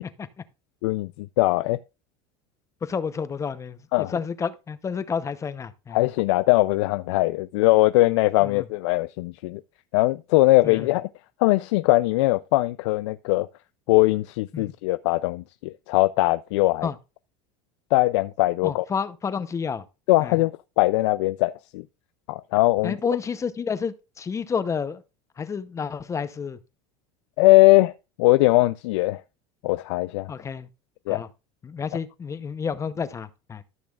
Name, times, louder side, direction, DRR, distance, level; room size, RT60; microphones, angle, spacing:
voice 1, 0.8-1.8 3.9-4.2 5.9-9.6 9.9-11.1 11.4-13.5 13.9-16.9 17.9-18.8 20.1-21.8 22.3-23.0 27.4-27.9 28.2-29.2 29.6-30.3 31.1-31.2, left 20 dB, 85° left, 0.4 m, -21 dB
voice 2, 2.8-6.0 8.4-8.7 10.6-10.8 14.5-14.7 16.8-16.9 18.6-19.8 20.2-20.4 22.8-25.0 25.4-26.6 30.3-30.7 31.1-31.3 31.6-33.6, left 6 dB, 20° left, 0.7 m, -30 dB
13.5 x 6.2 x 2.4 m
supercardioid pair, 130°, 15 cm